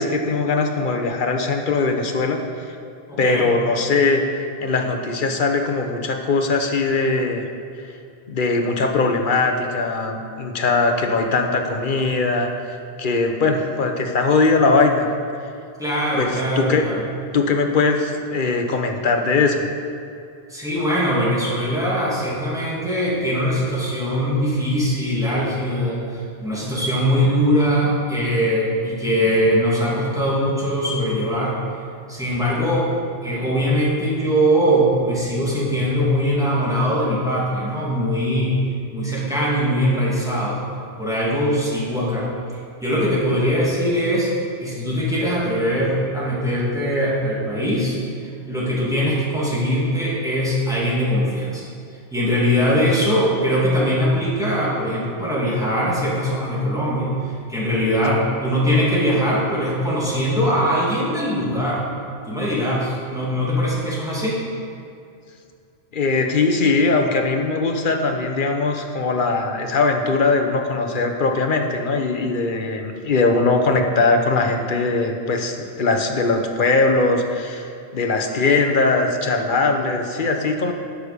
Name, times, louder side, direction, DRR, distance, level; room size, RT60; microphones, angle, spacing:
voice 1, 0.0-2.4 3.2-4.2 4.6-7.4 8.3-12.5 13.0-15.1 16.1-16.9 17.3-19.7 52.8-52.9 65.9-80.7, left 3 dB, 50° left, 4 dB, 1.0 m, -20 dB
voice 2, 3.1-3.5 15.8-17.0 20.5-31.5 32.1-32.9 33.2-38.6 38.9-40.6 41.0-44.3 44.6-51.6 52.1-61.9 62.3-64.4, equal, 5° right, -7 dB, 2.4 m, -21 dB
11.5 x 6.5 x 5.1 m, 2.4 s
omnidirectional pair, 1.2 m